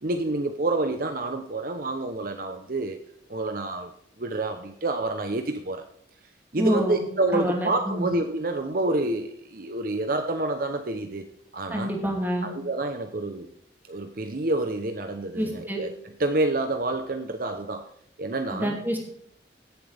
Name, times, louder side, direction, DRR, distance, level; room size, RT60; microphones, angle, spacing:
voice 1, 0.0-3.0 3.3-3.9 4.2-5.8 6.5-11.3 11.5-11.9 12.4-13.5 13.9-17.9 18.2-18.8, right 2 dB, 50° right, 7 dB, 0.8 m, -28 dB
voice 2, 6.6-7.0 7.3-8.1 11.7-12.5 15.4-15.8 18.5-19.0, equal, 10° right, 0 dB, 2.6 m, -27 dB
17.0 x 7.8 x 3.5 m, 0.69 s
head